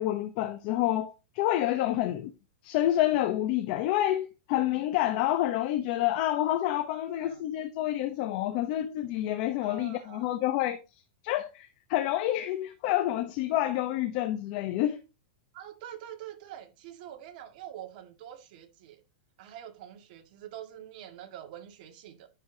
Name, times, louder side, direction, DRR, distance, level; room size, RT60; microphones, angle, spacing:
voice 1, 0.0-2.3 2.6-15.0, left 13 dB, 45° left, 1.0 m, -28 dB
voice 2, 7.1-7.4 9.6-10.3 15.5-19.0 19.4-22.3, right 11 dB, 50° right, 2.0 m, -45 dB
9.9 x 6.9 x 2.8 m
supercardioid pair, 145°, 6 cm